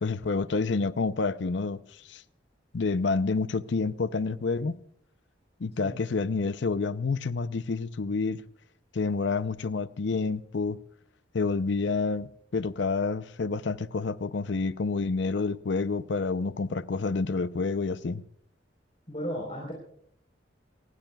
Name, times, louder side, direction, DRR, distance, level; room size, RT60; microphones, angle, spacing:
voice 1, 0.0-1.8 2.1-2.2 2.7-4.8 5.6-8.4 8.9-10.8 11.3-18.2, left 4 dB, 70° left, 0.6 m, -28 dB
voice 2, 5.7-6.0 19.1-19.7, equal, 35° left, 4.0 m, -35 dB
27.0 x 19.5 x 2.3 m
head